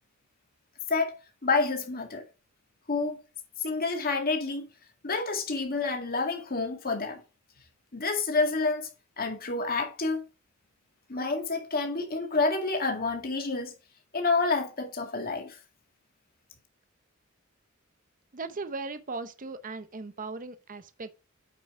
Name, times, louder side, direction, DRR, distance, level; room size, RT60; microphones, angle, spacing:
voice 1, 1.4-2.2 2.9-3.2 3.6-4.7 5.0-7.2 7.9-8.9 9.2-10.3 11.1-13.7 14.1-15.6, left 3 dB, 45° left, 2.0 m, -28 dB
voice 2, 18.3-21.1, right 3 dB, 40° right, 0.8 m, -38 dB
8.7 x 5.4 x 3.7 m
head